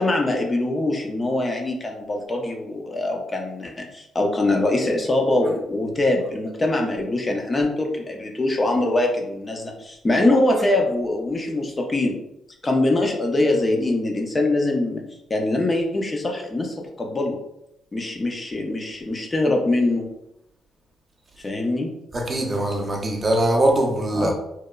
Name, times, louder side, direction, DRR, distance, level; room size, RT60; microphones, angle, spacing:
voice 1, 0.0-12.2 12.6-15.0 15.3-17.4 17.9-20.0 21.4-21.9 24.1-24.3, left 2 dB, 25° left, 2 dB, 0.4 m, -23 dB
voice 2, 22.1-24.3, right 1 dB, 30° right, 1 dB, 0.5 m, -21 dB
2.9 x 2.1 x 2.3 m, 0.82 s
cardioid pair, 90°, 0 cm